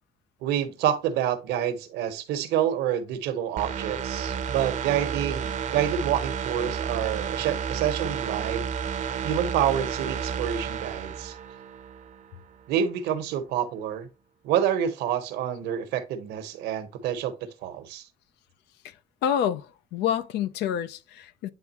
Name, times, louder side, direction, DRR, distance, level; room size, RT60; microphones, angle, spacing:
voice 1, 0.4-8.7 9.2-11.3 12.7-14.1 14.4-17.3 17.6-18.0, right 10 dB, 85° right, 1.1 m, -28 dB
sound 1, 3.6-12.2 12.6-12.7, right 7 dB, 45° right, 0.6 m, -31 dB
voice 2, 18.8-21.5, left 9 dB, 80° left, 0.6 m, -28 dB
9.0 x 3.6 x 3.0 m
cardioid pair, 110°, 17 cm